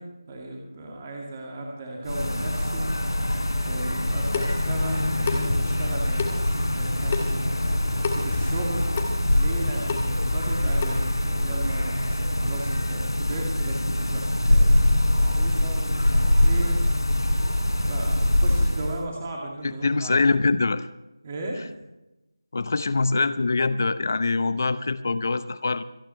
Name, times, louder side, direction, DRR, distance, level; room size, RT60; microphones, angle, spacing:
voice 1, 0.0-2.9 3.6-8.8 9.3-16.9 17.9-20.3 21.2-21.8, right 2 dB, 20° right, 0 dB, 2.2 m, -36 dB
sound 1, 2.0-19.0, left 1 dB, 85° left, 4.1 m, -23 dB
Water tap faucet / Sink (filling or washing) / Drip, 4.0-11.2, left 4 dB, 20° left, 1.6 m, -34 dB
voice 2, 19.6-20.9 22.5-25.8, left 3 dB, 40° left, 14 dB, 0.8 m, -24 dB
27.0 x 10.0 x 3.2 m, 0.97 s
figure-of-eight pair, 165°, 2 cm